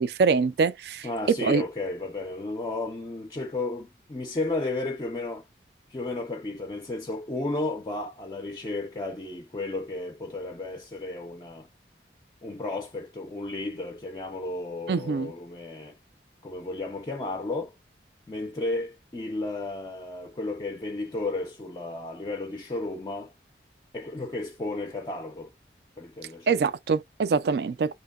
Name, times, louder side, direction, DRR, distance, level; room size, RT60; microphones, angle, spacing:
voice 1, 0.0-1.1 1.4-1.6 14.9-15.3 26.5-27.9, right 5 dB, 60° right, 0.3 m, -24 dB
voice 2, 1.0-5.4 5.9-11.7 12.4-16.0 16.4-17.7 18.3-23.3 23.9-25.5 26.0-26.6, left 2 dB, 25° left, 0.4 m, -33 dB
2.8 x 2.1 x 2.3 m
head